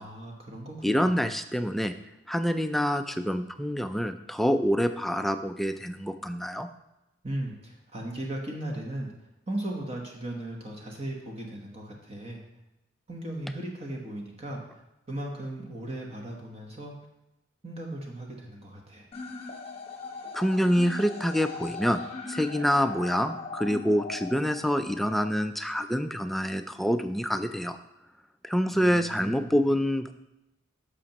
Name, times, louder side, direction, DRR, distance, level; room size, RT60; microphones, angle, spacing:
voice 1, 0.0-1.3 7.2-9.1 9.5-12.4 13.1-14.8 15.1-16.9 17.6-19.1 28.7-29.5, right 1 dB, 30° right, 0 dB, 1.1 m, -37 dB
voice 2, 0.8-1.9 2.3-6.7 20.3-22.0 22.3-27.8 28.4-30.1, equal, ahead, 8 dB, 0.3 m, -26 dB
sound 1, 19.1-25.1, left 4 dB, 30° left, 0.9 m, -40 dB
11.0 x 6.6 x 2.9 m, 0.93 s
head